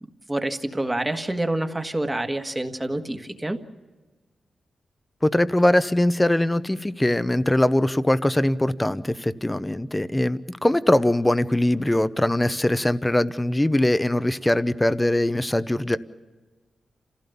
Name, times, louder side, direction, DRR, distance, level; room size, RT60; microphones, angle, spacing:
voice 1, 0.3-3.6, right 1 dB, 15° right, 6 dB, 1.6 m, -27 dB
voice 2, 5.2-16.0, left 1 dB, 10° left, 13 dB, 0.8 m, -21 dB
28.5 x 16.0 x 7.0 m, 1.3 s
wide cardioid pair, 95°, 0 cm